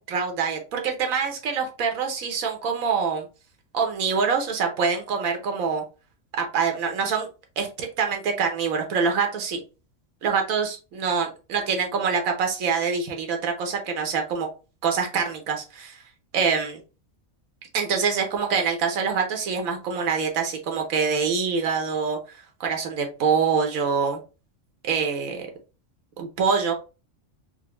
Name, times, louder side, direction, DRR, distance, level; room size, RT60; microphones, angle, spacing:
voice 1, 0.0-3.3 3.7-5.8 6.4-7.3 7.6-9.6 10.2-14.5 14.8-16.0 16.3-16.8 17.7-24.2 24.8-25.5 26.2-26.7, right 5 dB, 90° right, 3 dB, 1.2 m, -25 dB
4.0 x 2.1 x 2.9 m, 0.32 s
omnidirectional pair, 1.4 m